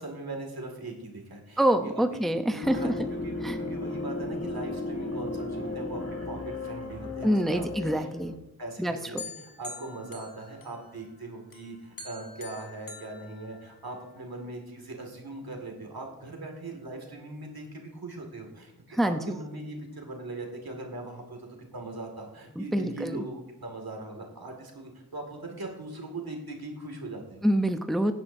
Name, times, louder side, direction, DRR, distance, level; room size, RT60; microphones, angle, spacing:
voice 1, 0.0-1.6 1.9-2.2 2.5-2.9 3.2-7.6 7.9-8.1 8.6-27.4, right 2 dB, 80° right, 2 dB, 2.1 m, -40 dB
voice 2, 1.6-3.1 3.4-3.6 7.2-8.4 8.8-8.9 18.9-19.4 22.6-23.2 27.4-28.1, right 1 dB, ahead, 7 dB, 0.6 m, -26 dB
sound 1, 2.6-8.4, left 2 dB, 40° left, 1.5 m, -35 dB
sound 2, 9.2-11.1 11.5-14.1, left 3 dB, 65° left, 1.5 m, -45 dB
16.5 x 9.9 x 2.6 m, 0.95 s
wide cardioid pair, 60°, 36 cm